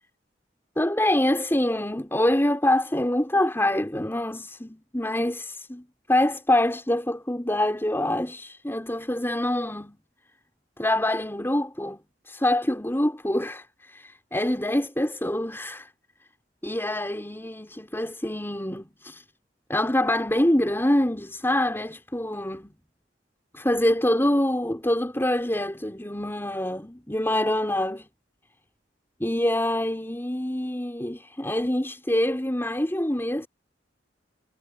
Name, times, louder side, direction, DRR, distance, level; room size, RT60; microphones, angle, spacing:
voice 1, 0.8-10.0 10.8-15.9 16.6-19.2 19.7-22.8 23.5-28.1 29.2-33.5, left 1 dB, 15° left, 4.7 m, -25 dB
head